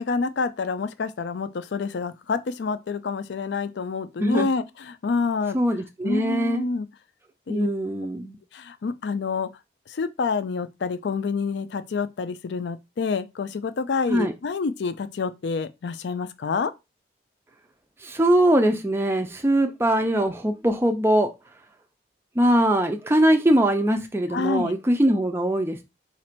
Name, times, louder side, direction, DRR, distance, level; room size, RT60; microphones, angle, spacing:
voice 1, 0.0-5.6 6.0-6.9 7.5-7.7 8.5-9.5 9.9-16.7 24.3-24.7, left 4 dB, 75° left, 0.4 m, -28 dB
voice 2, 5.5-6.7 7.5-8.3 14.1-14.3 18.0-21.3 22.4-25.8, right 1 dB, 15° right, 0.3 m, -21 dB
4.1 x 2.5 x 4.3 m
head